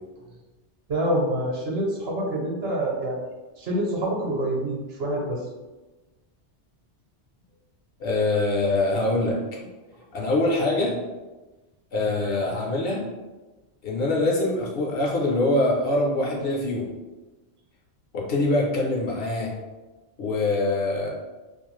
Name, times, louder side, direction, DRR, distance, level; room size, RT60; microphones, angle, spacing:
voice 1, 0.9-3.2 3.6-5.4, right 1 dB, 65° right, -1 dB, 0.9 m, -26 dB
voice 2, 8.0-9.4 10.1-11.0 11.9-13.1 13.8-16.9 18.1-19.5 20.2-21.1, left 2 dB, 65° left, -2 dB, 0.7 m, -24 dB
2.5 x 2.3 x 3.0 m, 1.2 s
omnidirectional pair, 1.2 m